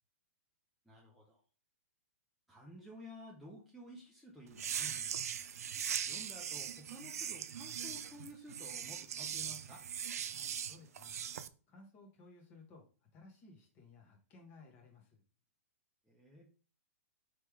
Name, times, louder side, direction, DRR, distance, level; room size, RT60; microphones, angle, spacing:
voice 1, 0.9-1.4 2.5-5.0 6.1-9.8 16.1-16.4, equal, ahead, -5 dB, 0.6 m, -53 dB
sound 1, 4.5-11.5, right 8 dB, 85° right, 0.4 m, -40 dB
voice 2, 10.3-11.2 11.7-15.2, left 3 dB, 25° left, 1 dB, 1.3 m, -59 dB
3.5 x 3.2 x 4.6 m, 0.38 s
hypercardioid pair, 165°, 8 cm